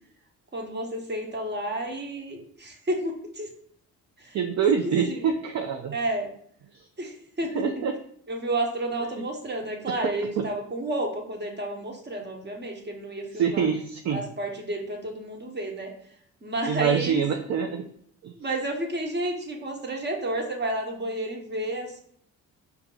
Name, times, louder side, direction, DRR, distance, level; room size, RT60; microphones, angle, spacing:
voice 1, 0.5-3.5 4.2-4.3 4.8-5.2 5.9-6.3 7.0-7.8 8.3-13.7 14.1-15.9 16.4-17.2 18.4-22.0, right 1 dB, 30° right, 2 dB, 1.2 m, -31 dB
voice 2, 4.3-6.0 6.7-6.9 7.5-8.0 9.0-9.2 10.0-10.5 13.3-14.2 16.7-17.9 18.2-18.3, right 7 dB, 50° right, 4 dB, 0.5 m, -26 dB
4.5 x 2.8 x 3.9 m, 0.64 s
supercardioid pair, 60°, 34 cm